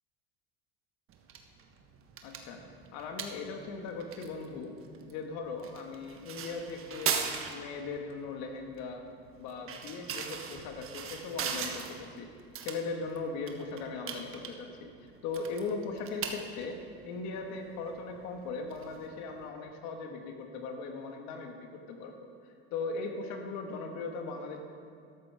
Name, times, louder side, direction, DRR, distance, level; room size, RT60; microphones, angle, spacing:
sound 1, 1.1-19.5, right 7 dB, 45° right, 1.3 m, -41 dB
voice 1, 2.2-2.6 2.9-4.7 5.1-7.2 7.5-9.1 9.4-12.3 12.6-14.9 15.2-16.8 17.0-24.6, left 4 dB, 65° left, 3 dB, 1.8 m, -39 dB
13.0 x 12.5 x 3.6 m, 2.3 s
supercardioid pair, 90°, 30 cm